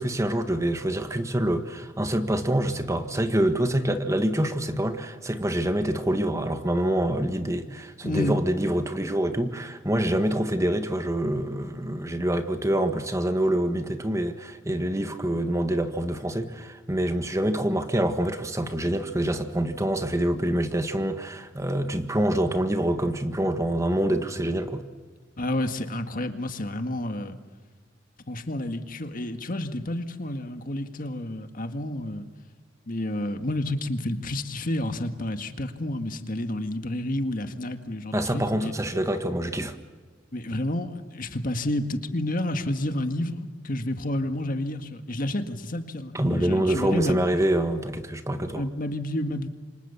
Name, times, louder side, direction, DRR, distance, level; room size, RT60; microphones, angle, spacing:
voice 1, 0.0-24.8 38.1-39.7 46.1-48.6, right 1 dB, 15° right, 8 dB, 1.5 m, -26 dB
voice 2, 8.0-8.4 25.4-27.4 28.3-32.3 32.9-38.7 40.3-47.2 48.5-49.5, left 1 dB, 50° left, 7 dB, 1.8 m, -30 dB
28.0 x 26.0 x 7.2 m, 1.5 s
head